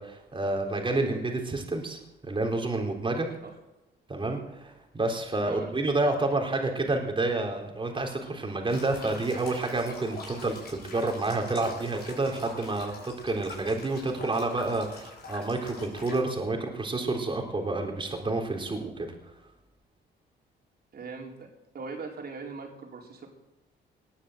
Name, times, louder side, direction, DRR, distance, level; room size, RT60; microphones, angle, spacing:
voice 1, 0.0-2.0 2.3-3.3 4.1-19.1, right 2 dB, 25° right, 2 dB, 3.9 m, -29 dB
voice 2, 5.5-5.8 20.9-21.5 21.7-23.3, right 4 dB, 55° right, 0 dB, 4.7 m, -40 dB
sound 1, 8.7-16.2, left 3 dB, 55° left, 6.1 m, -45 dB
19.5 x 7.3 x 8.0 m, 0.99 s
cardioid pair, 90°, 20 cm